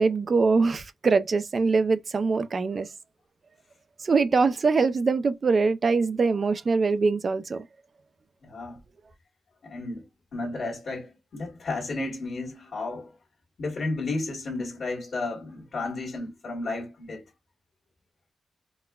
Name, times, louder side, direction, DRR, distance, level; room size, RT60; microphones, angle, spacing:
voice 1, 0.0-2.9 4.0-7.7, right 4 dB, 40° right, 0.4 m, -23 dB
voice 2, 8.4-8.8 9.6-13.2 13.6-17.3, left 2 dB, 50° left, 1.4 m, -33 dB
4.1 x 2.1 x 2.3 m
wide cardioid pair, 155°, 0 cm